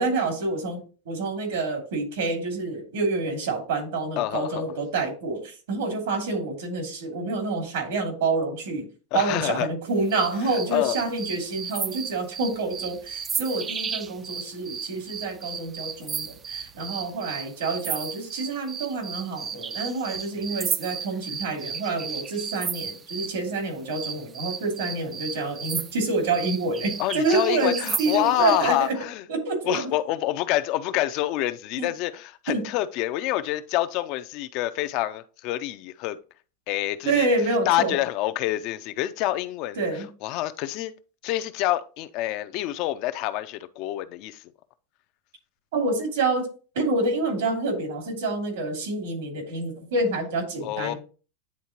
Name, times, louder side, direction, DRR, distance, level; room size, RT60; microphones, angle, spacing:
voice 1, 0.0-8.9 9.1-28.9 29.3-29.9 31.8-31.9 32.5-32.6 37.0-37.9 39.8-40.0 45.7-46.5 46.7-51.0, right 3 dB, 80° right, 2.8 m, -27 dB
voice 2, 4.2-4.7 9.1-9.7 10.4-11.0 20.4-20.5 27.0-29.2 29.7-36.2 36.7-37.3 37.7-39.8 40.2-40.9 41.2-44.4 50.6-50.9, left 15 dB, 50° left, 0.4 m, -27 dB
sound 1, 10.1-23.4 23.9-28.7, right 6 dB, 20° right, 0.3 m, -34 dB
9.5 x 3.7 x 2.9 m
supercardioid pair, 140°, 0 cm